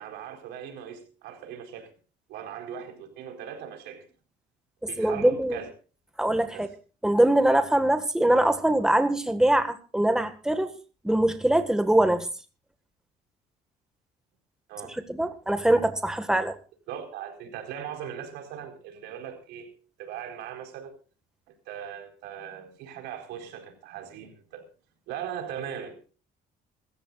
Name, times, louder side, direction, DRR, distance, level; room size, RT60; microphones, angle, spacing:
voice 1, 0.0-1.9 2.3-4.1 4.9-5.7 6.5-6.7 14.7-14.9 16.9-19.7 20.0-20.9 21.5-24.6 25.1-26.0, right 9 dB, 90° right, 4.4 m, -39 dB
voice 2, 5.0-5.6 6.2-6.7 7.0-10.7 11.0-12.3 15.1-16.6, right 1 dB, 5° right, 1.7 m, -23 dB
26.0 x 14.5 x 2.5 m
cardioid pair, 110°, 17 cm